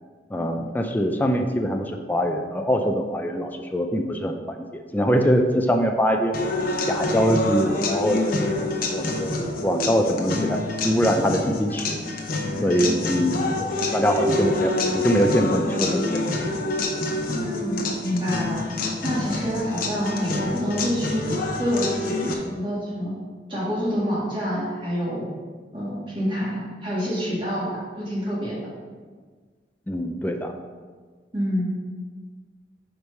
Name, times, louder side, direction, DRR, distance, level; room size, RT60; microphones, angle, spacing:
voice 1, 0.3-6.3 6.9-12.0 12.6-16.4 29.9-30.5, equal, 10° left, 3 dB, 0.4 m, -23 dB
sound 1, 6.3-22.3, left 2 dB, 55° left, 0.8 m, -27 dB
voice 2, 12.5-13.1 17.3-18.6 19.0-21.3 21.6-23.2 23.5-25.3 25.7-28.7 31.3-31.7, equal, 30° right, -6 dB, 2.0 m, -27 dB
5.0 x 4.6 x 5.4 m, 1.5 s
head